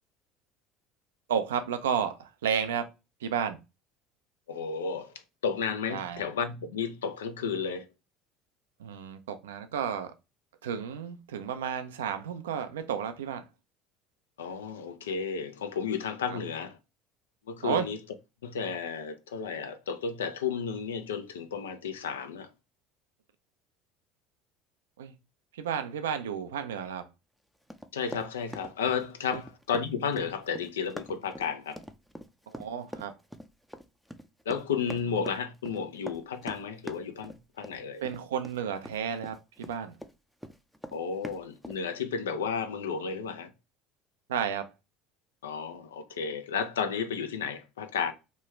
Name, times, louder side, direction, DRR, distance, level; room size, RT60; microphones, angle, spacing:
voice 1, 1.3-2.9 3.2-3.6 5.9-6.2 8.8-10.1 10.6-13.5 16.3-16.4 17.6-17.9 25.0-25.1 25.5-27.1 29.3-29.4 32.5-33.1 38.0-39.9 44.3-44.7, right 8 dB, 80° right, 0.4 m, -32 dB
voice 2, 4.5-5.1 5.4-7.9 14.4-16.8 17.5-18.0 18.4-22.5 27.9-31.8 34.5-38.0 40.9-43.5 45.4-48.1, left 6 dB, 85° left, 0.4 m, -33 dB
Run, 27.7-40.1 40.4-41.8, equal, ahead, 0.4 m, -43 dB
3.0 x 2.3 x 3.1 m
hypercardioid pair, 70°, 0 cm